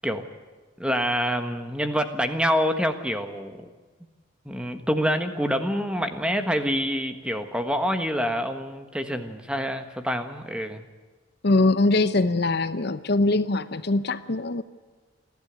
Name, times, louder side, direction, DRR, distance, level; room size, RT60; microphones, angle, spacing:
voice 1, 0.8-3.7 4.4-10.8, equal, 5° right, 7 dB, 1.4 m, -26 dB
voice 2, 11.4-14.6, left 2 dB, 50° left, 13 dB, 0.7 m, -22 dB
30.0 x 12.0 x 8.3 m, 1.4 s
head